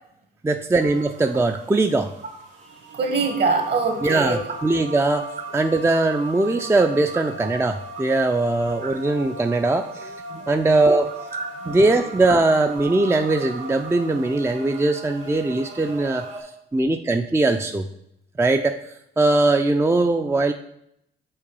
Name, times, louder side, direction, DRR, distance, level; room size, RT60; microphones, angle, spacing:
voice 1, 0.4-2.1 4.0-10.1 10.5-11.1 11.7-16.2 16.7-17.9 18.4-18.8 19.2-20.5, right 2 dB, 10° right, 6 dB, 0.4 m, -20 dB
sound 1, 0.8-16.4, right 2 dB, 70° right, 2.3 m, -38 dB
voice 2, 2.9-4.4 8.8-8.9 10.3-10.5 11.3-11.7, right 4 dB, 55° right, 4 dB, 1.6 m, -24 dB
5.6 x 3.9 x 5.3 m, 0.76 s
supercardioid pair, 60°, 21 cm